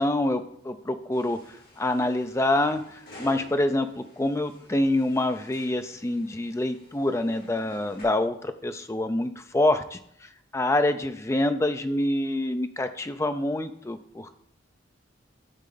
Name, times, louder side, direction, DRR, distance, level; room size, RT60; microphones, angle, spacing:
voice 1, 0.0-14.3, left 1 dB, 15° left, 9 dB, 0.4 m, -26 dB
sound 1, 1.1-8.0, equal, 45° left, 2.5 m, -51 dB
11.5 x 4.2 x 3.9 m, 0.71 s
head